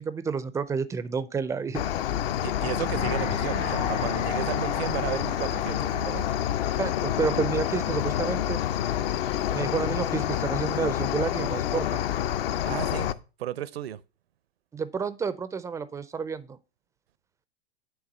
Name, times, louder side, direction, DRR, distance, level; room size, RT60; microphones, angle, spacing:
voice 1, 0.0-1.8 6.8-8.6 9.5-12.0 14.7-16.6, right 5 dB, 10° right, 0.4 m, -30 dB
Cricket, 1.7-13.1, left 11 dB, 60° left, 0.6 m, -28 dB
voice 2, 2.4-6.3 12.6-13.1 13.4-14.0, right 12 dB, 70° right, 0.6 m, -33 dB
sound 1, 2.6-7.8 8.1-8.2, left 4 dB, 90° left, 1.8 m, -36 dB
9.0 x 3.6 x 6.5 m
hypercardioid pair, 100°, 32 cm